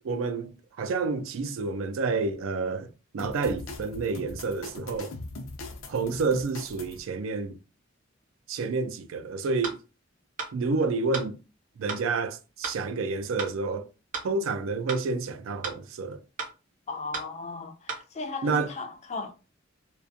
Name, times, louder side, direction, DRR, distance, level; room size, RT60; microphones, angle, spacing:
voice 1, 0.0-5.1 5.9-7.6 8.5-9.8 10.5-11.4 11.8-13.9 14.2-16.2 18.4-18.7, right 4 dB, 85° right, 0.4 m, -29 dB
sound 1, 3.2-7.0, left 2 dB, 80° left, 0.5 m, -40 dB
sound 2, 9.6-9.8 10.4-10.5 11.1-11.3 11.9-12.0 12.6-12.8 13.4-13.5 14.1-14.3 14.9-15.0 15.6-15.8 16.4-16.5 17.1-17.3 17.9-18.0, right 4 dB, 40° right, 0.6 m, -34 dB
voice 2, 16.9-19.3, left 3 dB, 35° left, 0.4 m, -36 dB
2.3 x 2.2 x 2.6 m
head